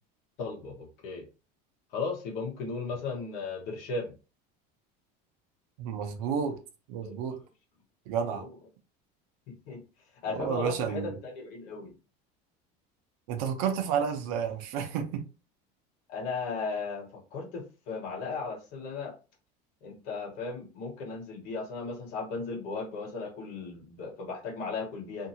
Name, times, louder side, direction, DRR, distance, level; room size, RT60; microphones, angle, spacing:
voice 1, 0.4-1.2 1.9-4.1 7.0-7.1 8.3-8.5 9.7-9.8 10.2-11.9 16.1-19.1 19.8-25.3, left 4 dB, 55° left, 1.0 m, -36 dB
voice 2, 5.8-6.6 6.9-7.4 8.1-8.4 10.3-11.2 13.3-15.2, right 7 dB, 70° right, 0.7 m, -31 dB
2.7 x 2.7 x 2.6 m
cardioid pair, 175°, 19 cm